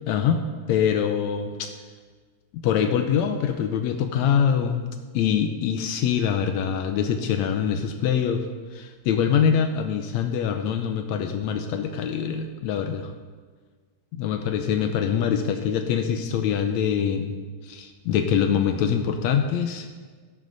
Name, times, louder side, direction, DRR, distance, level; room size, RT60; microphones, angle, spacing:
voice 1, 0.1-1.7 2.5-8.5 8.7-13.1 14.1-17.4 17.6-19.9, left 8 dB, 80° left, 6 dB, 1.6 m, -24 dB
13.0 x 11.5 x 4.0 m, 1.5 s
omnidirectional pair, 4.0 m